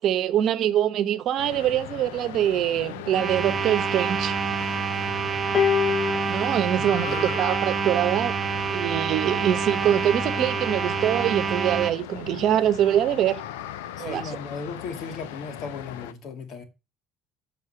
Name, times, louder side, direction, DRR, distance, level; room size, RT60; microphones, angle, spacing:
voice 1, 0.0-4.3 6.3-8.3 8.7-13.4 14.0-14.4, right 11 dB, 60° right, 1.0 m, -24 dB
sound 1, 1.4-16.1, left 12 dB, 85° left, 0.6 m, -38 dB
sound 2, 3.1-11.9, right 6 dB, 35° right, 1.2 m, -27 dB
sound 3, 5.5-8.0 9.0-9.2, left 8 dB, 40° left, 1.4 m, -28 dB
voice 2, 6.8-7.4 14.0-16.6, left 4 dB, 60° left, 2.2 m, -36 dB
7.4 x 5.5 x 6.4 m
supercardioid pair, 75°, 0 cm